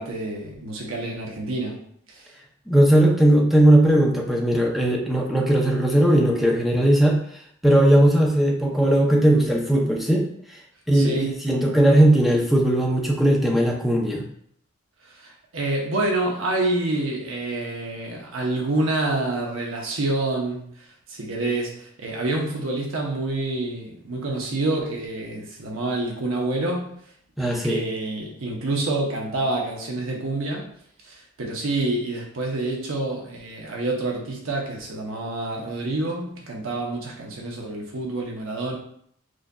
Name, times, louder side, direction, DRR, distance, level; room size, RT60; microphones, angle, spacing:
voice 1, 0.0-1.8 2.1-2.3 7.9-8.1 10.9-11.3 15.0-26.9 27.4-30.7 31.0-38.8, right 2 dB, 75° right, -1 dB, 0.8 m, -27 dB
voice 2, 2.7-7.2 7.6-10.3 10.9-14.2 27.4-27.8, right 1 dB, ahead, -1 dB, 0.5 m, -18 dB
6.1 x 2.6 x 2.2 m, 0.65 s
head